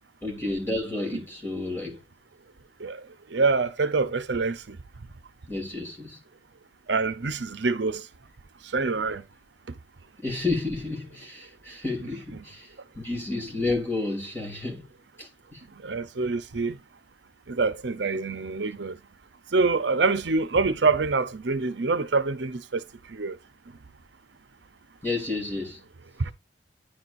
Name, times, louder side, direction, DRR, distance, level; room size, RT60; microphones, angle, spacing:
voice 1, 0.2-2.0 5.5-6.2 10.2-14.9 15.2-15.6 25.0-25.8, left 2 dB, 10° left, 2.5 m, -31 dB
voice 2, 3.3-4.8 6.9-8.0 8.7-9.2 15.8-16.8 17.5-18.9 19.5-22.8 23.1-23.4 26.2-26.3, right 4 dB, 70° right, 0.8 m, -25 dB
10.0 x 4.4 x 2.6 m
head